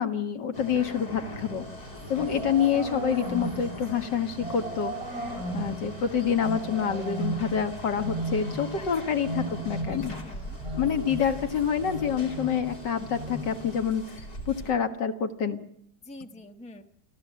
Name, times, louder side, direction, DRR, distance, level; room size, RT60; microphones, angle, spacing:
voice 1, 0.0-1.7 2.1-10.1 10.7-14.2 14.5-15.6, left 7 dB, 80° left, 6 dB, 2.2 m, -27 dB
sound 1, 0.5-14.7, left 1 dB, 60° left, 4.1 m, -42 dB
sound 2, 1.8-13.9, right 2 dB, 35° right, 7.9 m, -36 dB
voice 2, 2.1-2.5 8.7-9.5 9.9-10.6 16.0-16.8, left 1 dB, 5° left, 5 dB, 1.1 m, -45 dB
29.0 x 17.5 x 7.6 m, 0.74 s
omnidirectional pair, 1.9 m